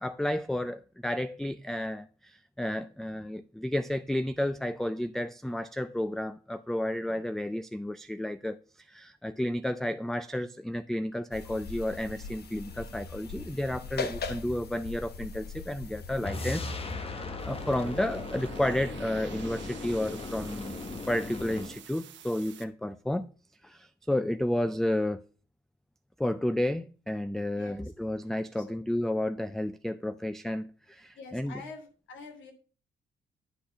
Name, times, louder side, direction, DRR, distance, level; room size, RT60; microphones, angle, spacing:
voice 1, 0.0-16.7 17.0-20.8 21.1-23.3 23.6-25.2 26.2-31.6, left 1 dB, ahead, 0.3 m, -32 dB
sound 1, 11.3-16.3, left 4 dB, 55° left, 1.1 m, -40 dB
sound 2, 16.2-21.8, left 3 dB, 30° left, 1.1 m, -37 dB
sound 3, 17.4-22.6, right 10 dB, 65° right, 0.8 m, -49 dB
voice 2, 27.5-27.9 28.6-28.8 31.1-32.5, left 4 dB, 70° left, 2.4 m, -46 dB
10.0 x 4.3 x 5.6 m
cardioid pair, 90°, 20 cm